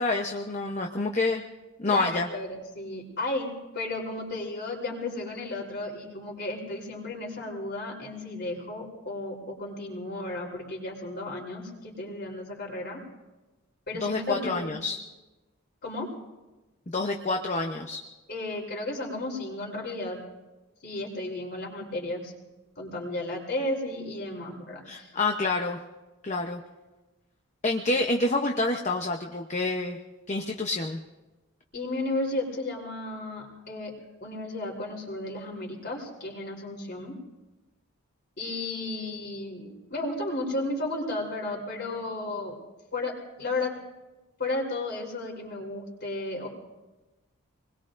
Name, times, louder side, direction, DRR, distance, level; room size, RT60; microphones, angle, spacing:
voice 1, 0.0-1.4 1.8-2.3 14.0-15.0 16.9-18.0 24.9-25.8 26.2-26.6 27.6-30.0 30.3-31.0, left 2 dB, 30° left, 2 dB, 0.8 m, -28 dB
voice 2, 1.9-13.0 13.9-14.7 15.8-16.1 18.3-20.2 20.8-22.3 22.8-25.1 31.7-33.9 34.2-37.2 38.4-42.6 42.9-43.1 43.4-43.7 44.4-46.5, left 2 dB, 50° left, -1 dB, 3.5 m, -33 dB
27.0 x 21.0 x 2.6 m, 1.1 s
head